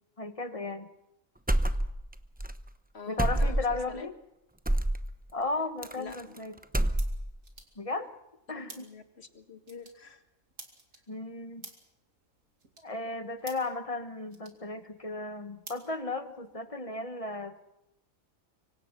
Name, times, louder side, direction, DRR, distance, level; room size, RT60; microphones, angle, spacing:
voice 1, 0.2-0.9 3.1-4.1 5.3-6.6 7.8-8.1 8.5-8.8 11.1-11.7 12.8-17.6, left 3 dB, 25° left, 9 dB, 1.4 m, -35 dB
sound 1, 1.5-2.1 2.4-2.5 3.2-3.8 4.7-5.0 5.8-6.4 6.6-7.4, right 1 dB, 10° right, 0.6 m, -27 dB
voice 2, 2.9-4.1 6.0-6.6 8.5-10.2, left 5 dB, 50° left, 8 dB, 1.9 m, -47 dB
sound 2, 5.2-16.7, right 3 dB, 75° right, 3.0 m, -54 dB
25.0 x 24.5 x 6.1 m, 0.86 s
omnidirectional pair, 1.4 m